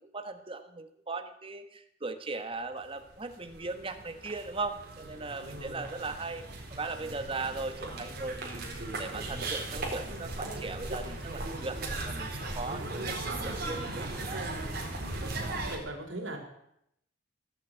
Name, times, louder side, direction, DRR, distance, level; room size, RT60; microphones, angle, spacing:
voice 1, 0.0-6.5 6.7-14.6, right 3 dB, 30° right, 9 dB, 1.3 m, -38 dB
sound 1, 3.0-3.1 3.2-15.8, right 2 dB, 55° right, 4.0 m, -37 dB
voice 2, 5.2-5.8 12.7-13.4 15.6-16.4, right 1 dB, 90° right, 2 dB, 3.7 m, -42 dB
17.5 x 7.9 x 8.9 m, 0.78 s
head